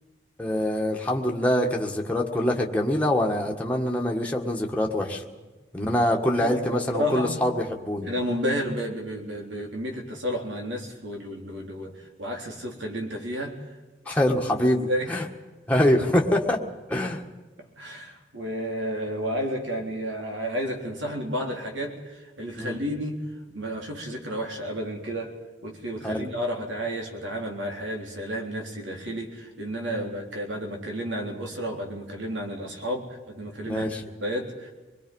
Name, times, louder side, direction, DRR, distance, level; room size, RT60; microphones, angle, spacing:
voice 1, 0.4-5.2 5.7-8.1 14.0-15.2 15.7-16.6 16.9-17.2 22.6-22.8 26.0-26.3 29.9-30.1 33.6-34.0, left 1 dB, 10° left, 0 dB, 1.6 m, -24 dB
voice 2, 6.4-7.3 8.0-13.6 14.8-15.2 17.6-23.2 23.5-25.4 25.6-33.9 34.2-34.7, equal, 85° right, 1 dB, 3.9 m, -31 dB
26.0 x 22.0 x 5.5 m, 1.2 s
head